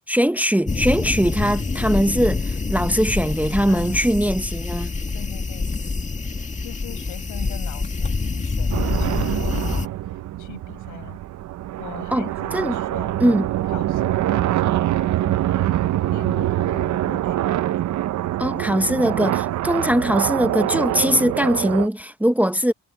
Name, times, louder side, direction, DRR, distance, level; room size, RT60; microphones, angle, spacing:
voice 1, 0.1-4.9 12.1-12.3 12.5-12.8 13.2-13.5 18.4-22.7, equal, 5° right, 0.9 m, -21 dB
sound 1, 0.7-9.9, left 3 dB, 25° left, 2.0 m, -26 dB
voice 2, 3.7-4.1 5.1-5.7 6.0-6.1 6.6-11.2 11.8-17.6, left 15 dB, 90° left, 6.0 m, -41 dB
sound 2, 8.7-21.9, right 14 dB, 70° right, 0.7 m, -24 dB
cardioid pair, 90°, 30 cm